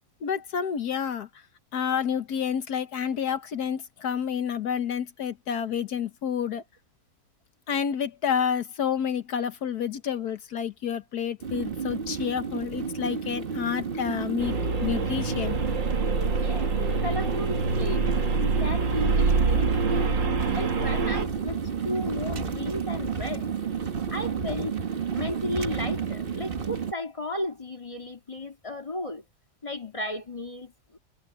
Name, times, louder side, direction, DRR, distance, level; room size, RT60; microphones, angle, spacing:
voice 1, 0.2-1.3 1.7-6.6 7.7-14.6 14.8-15.6, left 8 dB, 60° left, 1.5 m, -29 dB
sound 1, 11.4-26.9, right 6 dB, 35° right, 1.2 m, -31 dB
sound 2, 14.4-21.3, right 4 dB, 70° right, 2.9 m, -26 dB
voice 2, 16.3-16.7 17.0-23.5 24.1-24.7 25.1-29.2 29.6-31.0, left 1 dB, 15° left, 1.9 m, -34 dB
omnidirectional pair, 2.1 m